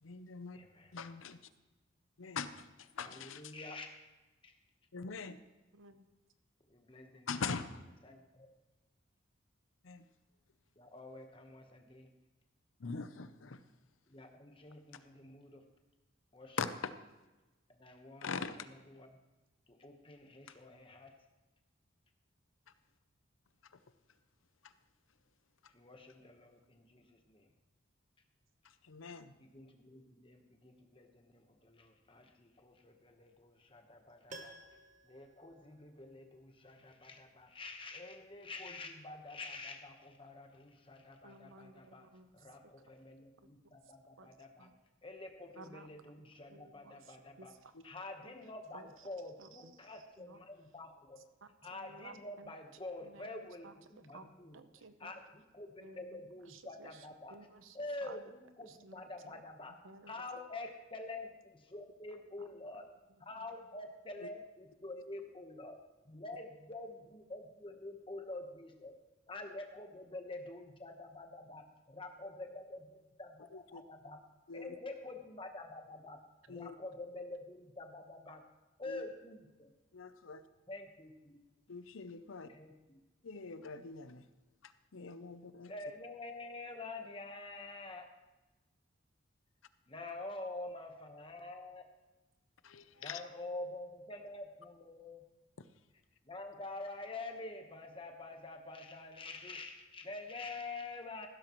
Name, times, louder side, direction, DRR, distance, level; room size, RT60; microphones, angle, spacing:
voice 1, 0.0-0.6 0.9-1.4 2.2-2.7 2.9-3.5 4.9-5.3 7.3-7.8 9.8-10.0 12.8-13.6 16.6-16.9 18.2-18.5 28.9-29.3 64.2-64.3 73.5-73.8 74.5-74.7 76.5-76.7 78.9-79.0 79.9-80.4 81.7-82.5 83.2-84.2 84.6-85.7 92.6-93.2, left 5 dB, 85° left, 12 dB, 0.7 m, -42 dB
voice 2, 0.5-0.9 3.0-3.9 4.4-4.5 6.7-7.3 8.0-8.5 10.8-12.1 14.1-15.6 16.3-16.6 17.8-18.3 18.9-19.1 19.8-21.1 25.7-27.4 29.4-34.5 35.1-42.0 42.4-44.7 45.0-47.5 47.8-51.2 51.6-53.7 54.0-54.5 55.0-55.1 55.5-57.3 57.7-58.2 58.6-59.7 60.1-62.8 63.2-65.7 66.1-66.9 67.3-68.9 69.3-71.7 71.9-74.2 74.5-75.6 76.0-76.2 76.5-78.4 78.8-79.4 80.7-81.4 82.5-83.0 85.7-88.1 89.9-91.9 93.0-95.2 96.3-101.3, left 2 dB, 25° left, 4 dB, 1.2 m, -47 dB
voice 3, 5.7-6.1 41.2-42.7 43.4-43.5 43.8-43.9 44.2-44.3 44.6-44.7 45.6-45.9 46.1-46.2 46.5-47.7 48.2-49.1 49.4-50.8 51.2-52.6 53.0-55.2 55.8-58.2 58.6-59.4 59.8-60.2 62.4-62.5 62.7-62.8 63.1-63.5, right 3 dB, 85° right, 10 dB, 0.9 m, -57 dB
Piano, 34.3-36.4 36.7-36.8, right 2 dB, 40° right, 1.1 m, -54 dB
15.0 x 12.5 x 3.1 m, 1.1 s
head